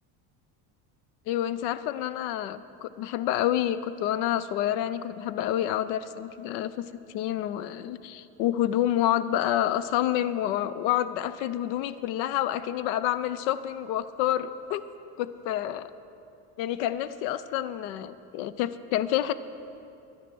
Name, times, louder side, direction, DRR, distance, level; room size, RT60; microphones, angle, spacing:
voice 1, 1.3-14.8 15.2-15.9 16.6-19.3, left 12 dB, 90° left, 15 dB, 0.5 m, -28 dB
11.0 x 10.0 x 6.0 m, 2.8 s
cardioid pair, 160°, 40 cm